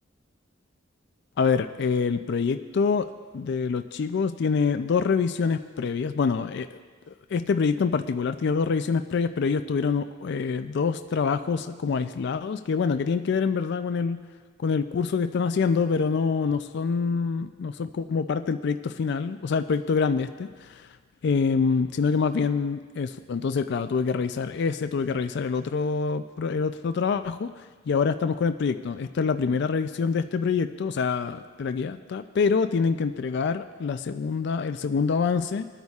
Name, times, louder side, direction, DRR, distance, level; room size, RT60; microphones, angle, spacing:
voice 1, 1.4-6.7 7.3-14.2 14.6-20.9 21.2-27.5 27.9-35.7, left 5 dB, 60° left, 9 dB, 0.4 m, -26 dB
21.0 x 9.4 x 2.4 m, 1.5 s
head